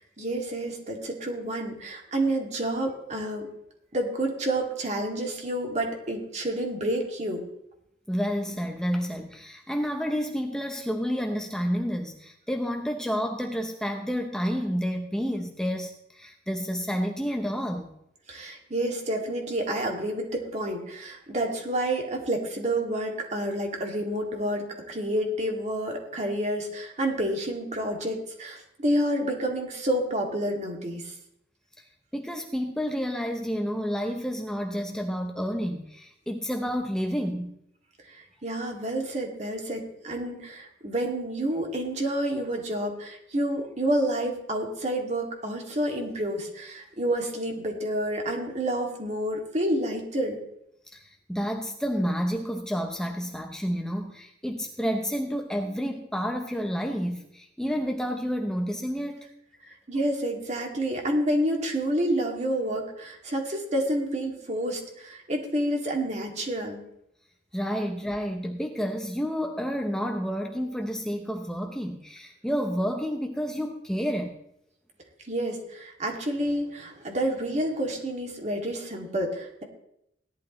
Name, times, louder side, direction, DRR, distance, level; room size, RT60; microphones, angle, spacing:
voice 1, 0.2-3.5 3.9-7.4 18.3-31.0 38.1-50.4 59.9-66.8 75.3-79.6, right 1 dB, 40° right, 1 dB, 2.3 m, -29 dB
voice 2, 8.1-17.9 32.1-37.6 50.9-59.3 59.6-59.7 67.5-74.3, equal, 5° left, 4 dB, 0.7 m, -30 dB
17.0 x 11.5 x 3.1 m, 0.79 s
head